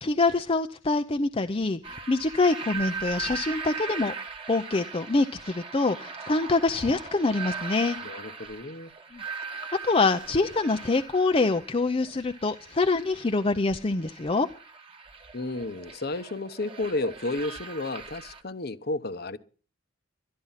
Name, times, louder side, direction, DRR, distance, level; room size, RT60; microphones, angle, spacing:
voice 1, 0.0-4.1 4.5-8.0 9.1-9.2 9.5-14.5, left 3 dB, 30° left, 0.6 m, -25 dB
sound 1, 1.8-18.4, right 5 dB, 25° right, 1.4 m, -40 dB
voice 2, 8.0-8.9 15.3-19.4, left 2 dB, 50° left, 1.0 m, -32 dB
12.5 x 12.0 x 5.7 m
head